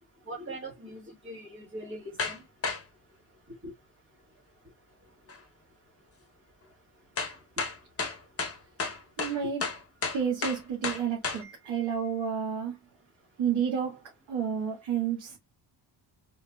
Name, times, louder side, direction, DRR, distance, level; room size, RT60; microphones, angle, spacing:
voice 1, 0.3-2.4 3.6-3.7 11.4-12.0, right 1 dB, 30° right, 1.6 m, -42 dB
sound 1, 2.2-2.4 2.6-2.8 5.3-5.4 7.2-11.4, left 4 dB, 30° left, 1.0 m, -32 dB
voice 2, 9.2-9.7 10.1-12.8 13.4-15.4, right 7 dB, 70° right, 1.8 m, -30 dB
4.6 x 3.9 x 2.3 m
wide cardioid pair, 170°, 47 cm